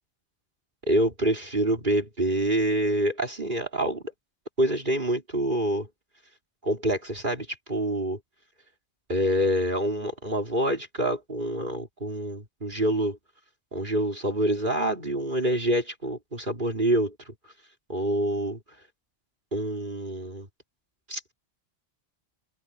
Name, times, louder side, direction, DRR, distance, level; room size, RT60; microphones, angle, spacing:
voice 1, 0.9-4.0 4.6-5.9 6.6-8.2 9.1-13.2 13.7-17.1 17.9-18.6 19.5-20.5 21.1-21.3, right 1 dB, 45° right, 4.1 m, -26 dB
open air
omnidirectional pair, 1.2 m